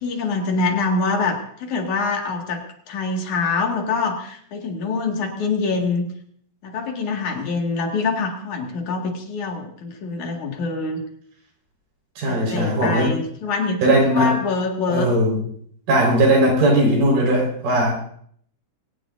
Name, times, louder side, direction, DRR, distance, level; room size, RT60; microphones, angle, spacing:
voice 1, 0.0-6.1 6.6-11.0 12.3-13.8 14.1-15.1, left 4 dB, 65° left, 2 dB, 3.4 m, -25 dB
voice 2, 12.2-13.1 13.8-14.3 14.9-15.4 15.9-18.0, right 1 dB, 90° right, -1 dB, 6.4 m, -18 dB
22.5 x 18.5 x 2.6 m, 0.64 s
omnidirectional pair, 3.7 m